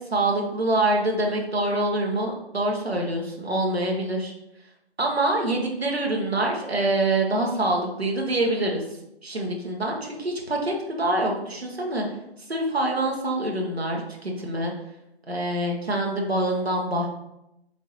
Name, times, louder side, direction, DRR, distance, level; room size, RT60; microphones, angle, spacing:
voice 1, 0.1-4.3 5.0-8.8 9.2-12.0 12.5-14.7 15.3-17.1, right 1 dB, 65° right, 0 dB, 1.2 m, -25 dB
4.2 x 3.6 x 3.1 m, 0.85 s
figure-of-eight pair, 180°, 33 cm